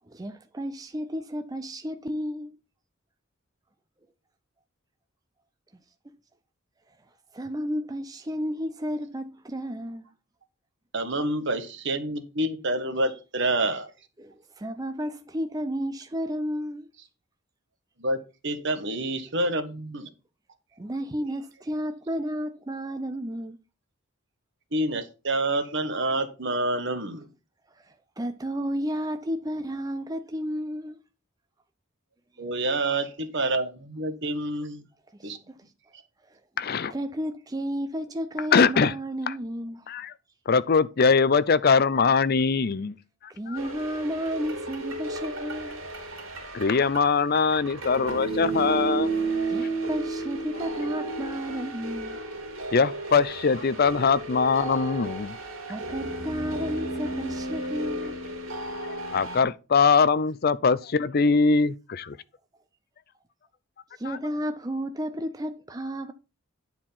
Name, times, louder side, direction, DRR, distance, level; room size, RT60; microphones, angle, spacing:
voice 1, 0.1-2.6 7.3-10.0 14.2-16.9 20.8-23.6 27.7-31.0 32.4-32.5 35.1-35.6 36.2-36.4 36.9-39.9 43.3-45.8 49.5-52.2 55.7-58.2 64.0-66.1, equal, 20° right, 0.5 m, -32 dB
voice 2, 10.9-13.9 18.0-20.1 24.7-27.3 32.4-34.8 35.2-35.4, right 1 dB, 55° right, 1.4 m, -28 dB
voice 3, 36.6-36.9 38.5-38.9 39.3-39.4 39.9-40.1 40.5-42.9 43.5-43.6 46.5-49.1 52.7-55.4 59.1-62.2 64.0-64.2, left 5 dB, 45° left, 0.5 m, -22 dB
sound 1, 43.6-59.4, right 2 dB, 75° right, 2.9 m, -33 dB
10.0 x 4.6 x 5.6 m
head